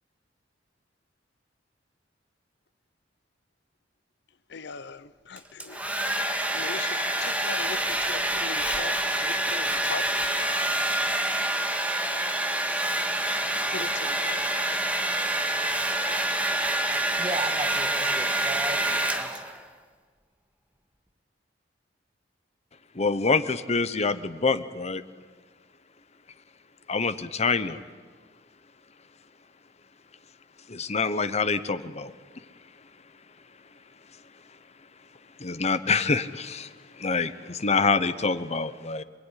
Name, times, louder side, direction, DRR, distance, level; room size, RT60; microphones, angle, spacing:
voice 1, 4.5-5.8 6.5-10.1 13.7-14.4, left 5 dB, 65° left, 15 dB, 0.8 m, -39 dB
Domestic sounds home sounds, 5.4-19.6, right 1 dB, 10° right, 1.8 m, -27 dB
voice 2, 17.2-19.5, right 2 dB, 25° right, 7 dB, 1.7 m, -35 dB
voice 3, 23.0-25.0 26.9-27.8 30.7-32.1 35.4-36.7 37.0-39.0, left 4 dB, 35° left, 13 dB, 0.9 m, -26 dB
26.5 x 20.5 x 10.0 m, 1.5 s
head